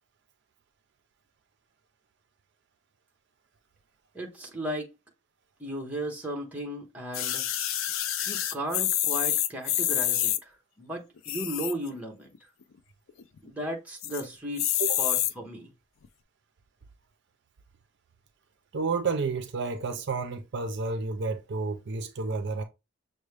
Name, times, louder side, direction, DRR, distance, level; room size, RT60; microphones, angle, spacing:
voice 1, 4.1-4.9 5.6-7.5 8.3-10.5 10.8-12.3 13.4-15.7, right 1 dB, 5° right, 0.9 m, -35 dB
sound 1, 7.1-10.4 11.2-11.9 12.3-12.4 12.6-12.7 13.1-13.5 14.0-14.2 14.6-15.3 16.0-16.1, left 12 dB, 70° left, 0.4 m, -27 dB
voice 2, 18.7-22.6, right 4 dB, 55° right, 0.5 m, -30 dB
6.2 x 2.1 x 3.3 m
head